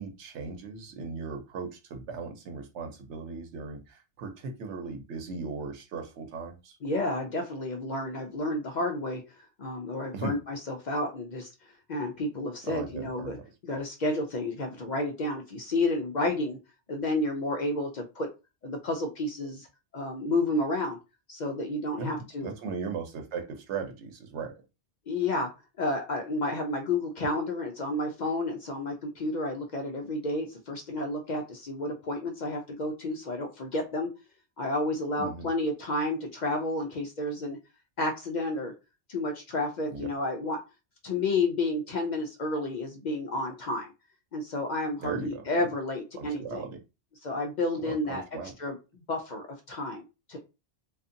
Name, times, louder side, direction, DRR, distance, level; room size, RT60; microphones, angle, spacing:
voice 1, 0.0-6.8 10.1-10.4 12.6-13.4 13.7-13.8 22.0-24.5 35.2-35.5 39.9-40.1 45.0-45.4 46.1-46.8 47.8-48.5, right 4 dB, 90° right, 5 dB, 1.0 m, -38 dB
voice 2, 6.8-9.2 9.6-11.5 11.9-13.4 13.6-16.6 16.9-18.3 18.6-19.7 19.9-21.0 21.3-22.5 25.1-25.5 25.8-34.1 34.6-37.6 38.0-38.7 39.1-40.6 41.0-43.9 44.3-46.6 47.2-48.2 48.6-50.4, left 2 dB, 60° left, 2 dB, 0.5 m, -31 dB
2.6 x 2.4 x 2.5 m, 0.28 s
omnidirectional pair, 1.1 m